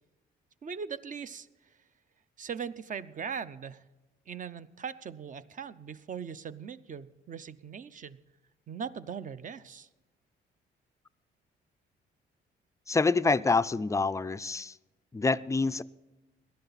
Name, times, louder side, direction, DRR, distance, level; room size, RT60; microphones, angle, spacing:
voice 1, 0.6-1.5 2.4-3.8 4.3-8.2 8.7-9.9, right 6 dB, 40° right, 14 dB, 0.6 m, -40 dB
voice 2, 12.9-14.8 15.1-15.8, left 3 dB, 15° left, 14 dB, 0.4 m, -26 dB
18.0 x 11.5 x 4.1 m, 1.1 s
cardioid pair, 90°, 20 cm